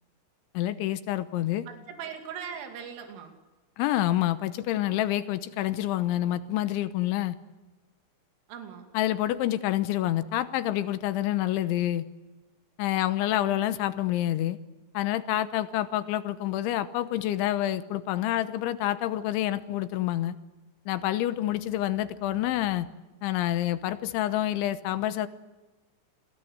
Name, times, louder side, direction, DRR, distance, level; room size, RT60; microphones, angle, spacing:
voice 1, 0.5-1.7 3.8-7.4 8.9-12.0 12.8-14.6 14.9-20.4 20.9-22.9 23.2-25.3, left 13 dB, 75° left, 12 dB, 3.2 m, -27 dB
voice 2, 1.7-3.3 8.5-8.9, right 7 dB, 75° right, 5 dB, 5.0 m, -40 dB
30.0 x 19.5 x 8.1 m, 1.2 s
omnidirectional pair, 5.8 m